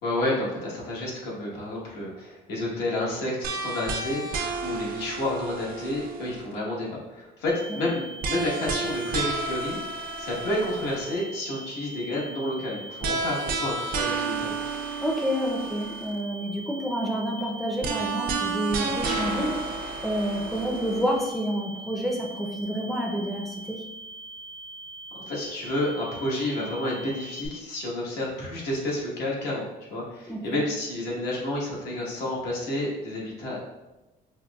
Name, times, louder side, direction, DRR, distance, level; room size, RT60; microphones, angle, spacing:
voice 1, 0.0-9.8 10.2-14.5 25.3-33.6, left 1 dB, 85° left, -4 dB, 1.2 m, -30 dB
sound 1, 3.4-6.6 8.2-11.2 13.0-16.2 17.8-21.3, right 3 dB, 60° right, 0.5 m, -31 dB
sound 2, 7.5-27.5, right 2 dB, 55° left, 0.6 m, -42 dB
voice 2, 15.0-19.5 20.0-23.8 30.3-30.6, equal, ahead, -1 dB, 0.4 m, -29 dB
5.3 x 2.1 x 2.2 m, 1.0 s
cardioid pair, 110°, 17 cm